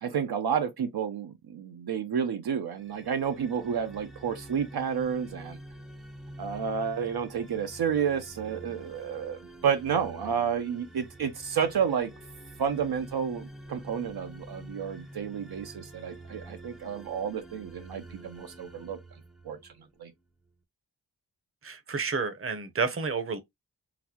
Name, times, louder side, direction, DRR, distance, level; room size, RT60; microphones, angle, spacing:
voice 1, 0.0-5.6 6.4-12.1 12.6-19.0 19.4-19.6 20.0-20.1, right 7 dB, 70° right, 0.6 m, -30 dB
sound 1, 2.7-19.9, right 1 dB, ahead, 0.6 m, -47 dB
voice 2, 21.6-23.4, right 5 dB, 35° right, 0.8 m, -30 dB
3.9 x 2.1 x 2.8 m
cardioid pair, 60°, 39 cm